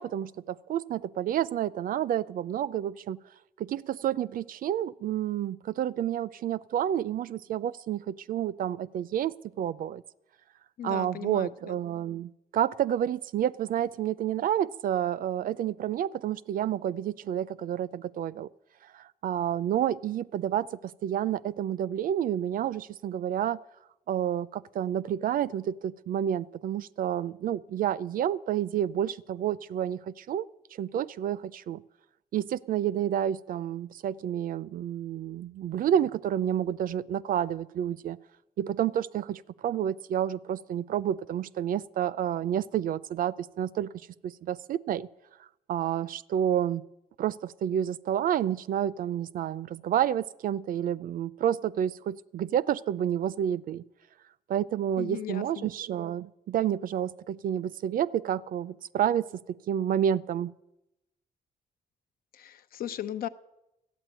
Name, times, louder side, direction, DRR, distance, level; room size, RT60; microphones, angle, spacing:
voice 1, 0.0-3.2 3.6-10.0 10.8-18.5 18.9-23.6 24.1-30.5 30.8-31.8 32.3-38.2 38.6-43.9 44.2-45.1 45.7-46.8 47.2-53.8 54.5-60.5, right 10 dB, 70° right, 18 dB, 0.5 m, -29 dB
voice 2, 10.8-11.8 55.0-55.7 62.3-63.3, left 11 dB, 80° left, 12 dB, 0.8 m, -37 dB
13.5 x 8.9 x 9.0 m, 0.90 s
cardioid pair, 115°, 15 cm